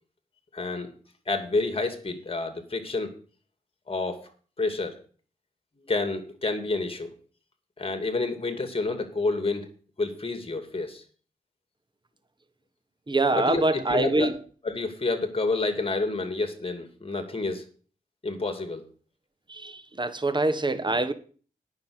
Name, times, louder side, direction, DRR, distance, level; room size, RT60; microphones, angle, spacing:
voice 1, 0.5-0.9 1.3-3.2 3.9-4.3 4.6-5.0 5.9-7.1 7.8-9.7 10.0-11.0 13.3-14.3 14.6-17.6 18.2-18.9, left 3 dB, 40° left, 2.6 m, -29 dB
voice 2, 13.1-14.3 19.5-21.1, right 2 dB, 30° right, 1.4 m, -25 dB
9.5 x 6.4 x 8.7 m
cardioid pair, 55°, 15 cm